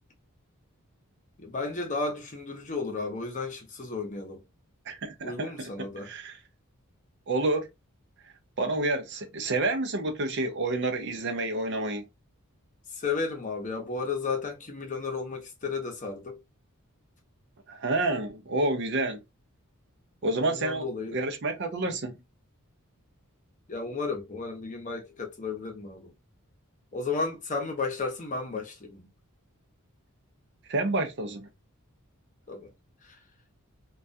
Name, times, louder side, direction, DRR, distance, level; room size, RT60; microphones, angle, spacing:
voice 1, 1.4-4.4 5.2-6.1 12.9-16.4 20.4-21.2 23.7-26.1 26.9-29.1 32.5-32.7 33.0-33.2, left 4 dB, 35° left, 0.7 m, -33 dB
voice 2, 4.9-5.7 6.0-6.4 7.3-7.7 8.6-12.0 17.7-19.2 20.2-22.2 30.7-31.5, right 2 dB, 55° right, 0.5 m, -29 dB
2.3 x 2.2 x 2.5 m
head